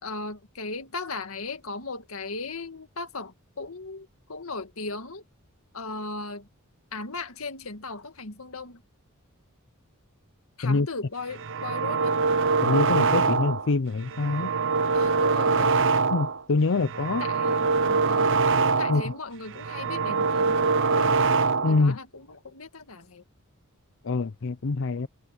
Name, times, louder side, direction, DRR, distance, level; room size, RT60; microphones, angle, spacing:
voice 1, 0.0-5.2 5.7-6.5 6.9-8.8 10.6-12.2 14.9-15.9 17.2-18.3 18.8-21.2 21.7-23.2, left 3 dB, 85° left, 1.9 m, -37 dB
sound 1, 11.3-13.7 14.1-16.4 16.8-19.1 19.5-21.9, right 4 dB, 60° right, 0.8 m, -24 dB
voice 2, 12.6-14.5 16.1-17.3 18.9-19.1 21.6-22.0 24.0-25.1, left 3 dB, 65° left, 0.6 m, -25 dB
head